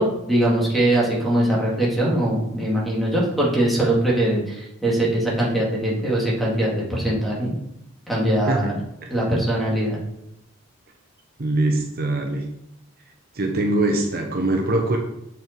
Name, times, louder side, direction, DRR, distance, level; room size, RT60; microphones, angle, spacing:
voice 1, 0.0-7.5 8.1-8.8 9.1-10.0, right 1 dB, ahead, -5 dB, 2.4 m, -21 dB
voice 2, 11.4-12.5 13.3-15.0, right 2 dB, 50° right, 2 dB, 0.9 m, -22 dB
7.6 x 6.2 x 4.6 m, 0.80 s
head